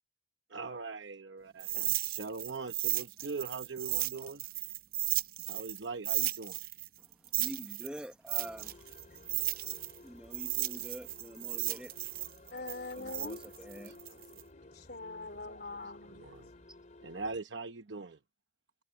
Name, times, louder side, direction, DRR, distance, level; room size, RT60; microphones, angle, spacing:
voice 1, 0.5-4.4 5.5-6.6 13.8-13.9 16.1-16.5 17.0-18.2, right 4 dB, 85° right, 0.9 m, -41 dB
Chain Rattling, 1.6-5.8 6.0-10.0 10.3-14.4, right 16 dB, 55° right, 0.6 m, -34 dB
voice 2, 7.0-8.9 10.0-11.9 12.9-14.0, equal, 5° right, 1.2 m, -46 dB
sound 1, 8.4-17.4, left 2 dB, 45° left, 2.7 m, -56 dB
voice 3, 12.5-16.3, left 2 dB, 60° left, 3.9 m, -44 dB
head